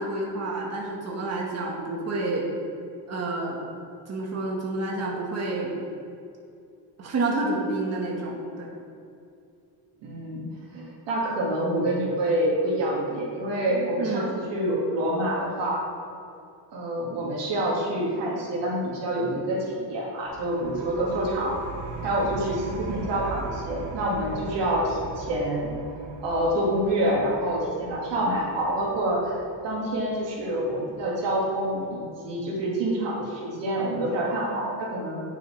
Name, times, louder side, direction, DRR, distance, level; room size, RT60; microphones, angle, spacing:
voice 1, 0.0-2.5 3.1-3.6 4.1-5.7 7.0-8.7 13.7-14.3, right 2 dB, 40° right, -2 dB, 1.4 m, -29 dB
voice 2, 10.0-10.5 10.7-15.9 16.7-21.6 22.0-25.7 26.2-35.2, right 1 dB, 90° right, -3 dB, 2.0 m, -27 dB
sound 1, 20.3-31.6, right 3 dB, 70° right, 1.0 m, -40 dB
9.6 x 6.6 x 3.2 m, 2.5 s
cardioid pair, 135°, 42 cm